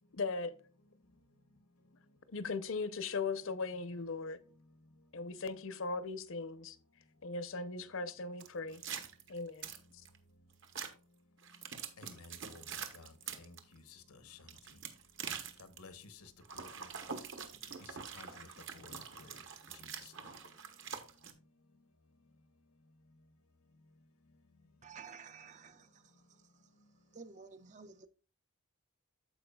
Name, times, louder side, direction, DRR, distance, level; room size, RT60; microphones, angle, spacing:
voice 1, 0.1-0.6 2.3-4.4 5.1-6.8 7.2-8.8 9.3-9.7, left 4 dB, 60° left, 0.7 m, -38 dB
sound 1, 8.4-10.2 10.6-10.9 11.4-13.6 14.4-15.8 16.4-21.3, right 7 dB, 55° right, 1.0 m, -44 dB
voice 2, 12.0-12.7 12.9-14.8 15.6-16.3 16.6-16.9 17.8-18.5 18.7-19.4 19.7-20.1, left 3 dB, 85° left, 1.0 m, -55 dB
voice 3, 24.8-26.6 27.1-28.1, right 5 dB, 35° right, 0.4 m, -53 dB
14.0 x 4.7 x 2.3 m
head